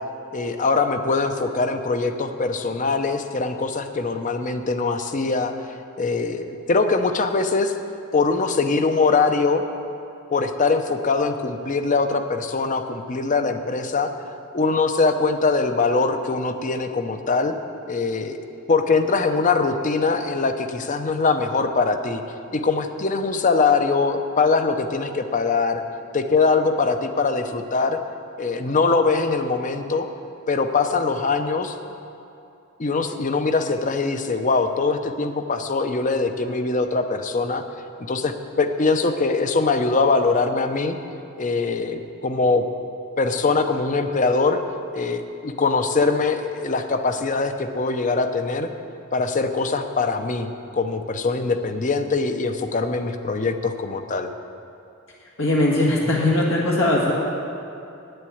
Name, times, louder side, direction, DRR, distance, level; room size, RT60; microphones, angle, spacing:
voice 1, 0.3-5.5 6.0-7.7 8.1-9.6 10.3-14.1 14.5-17.5 17.9-18.4 18.7-22.2 22.5-25.8 26.1-28.0 28.4-30.1 30.5-31.7 32.8-37.6 38.1-41.0 41.4-42.7 43.2-44.6 44.9-48.7 49.1-54.3, left 4 dB, 40° left, 8 dB, 0.6 m, -22 dB
voice 2, 55.4-57.1, left 1 dB, 85° left, -4 dB, 1.6 m, -20 dB
9.5 x 7.8 x 8.6 m, 2.7 s
head